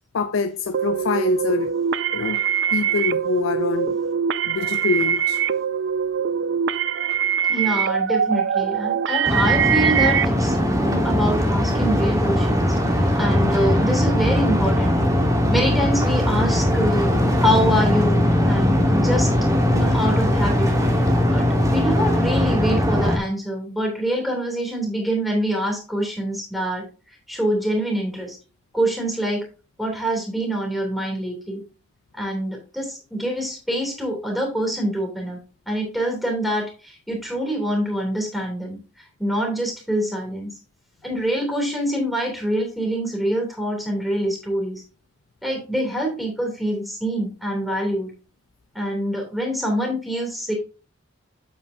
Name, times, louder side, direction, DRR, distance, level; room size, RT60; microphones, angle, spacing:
voice 1, 0.1-1.7 2.1-2.4 2.7-4.0 4.5-5.4, left 4 dB, 85° left, 0.5 m, -24 dB
sound 1, 0.7-10.3, right 8 dB, 60° right, 0.4 m, -23 dB
voice 2, 7.5-15.0 15.5-19.3 19.7-28.4 28.7-29.4 29.8-31.6 32.1-35.4 35.7-40.5 41.0-44.8 45.4-48.1 48.7-50.5, equal, ahead, 2.8 m, -25 dB
sound 2, 9.3-23.2, left 1 dB, 15° right, 1.4 m, -20 dB
8.3 x 7.9 x 2.7 m
head